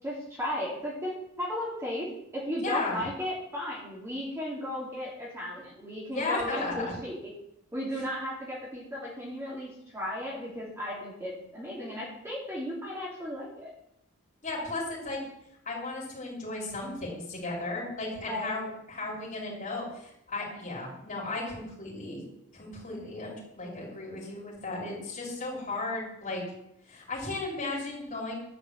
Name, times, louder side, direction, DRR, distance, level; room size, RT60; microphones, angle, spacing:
voice 1, 0.0-2.1 2.3-7.3 7.7-13.7 18.2-18.7, left 1 dB, 10° right, -5 dB, 3.1 m, -35 dB
voice 2, 2.6-3.0 6.1-6.9 14.4-15.2 15.7-22.2 22.5-26.4 26.9-28.3, left 2 dB, 35° left, -4 dB, 5.3 m, -35 dB
12.0 x 6.0 x 8.2 m, 0.78 s
head